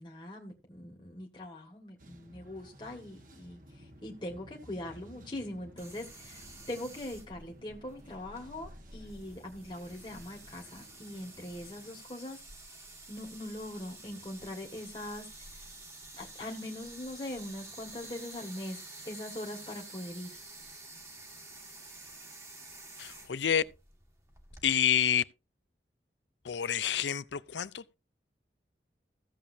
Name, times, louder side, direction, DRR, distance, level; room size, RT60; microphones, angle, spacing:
voice 1, 0.0-12.4 13.1-15.3 16.1-20.4, left 1 dB, 25° left, 1.7 m, -42 dB
sound 1, 2.0-12.0, equal, 50° right, 1.4 m, -56 dB
sound 2, 5.8-24.7, right 2 dB, 15° right, 1.5 m, -50 dB
voice 2, 23.0-23.6 24.6-25.2 26.4-28.0, left 9 dB, 90° left, 0.6 m, -28 dB
15.5 x 7.3 x 2.7 m
head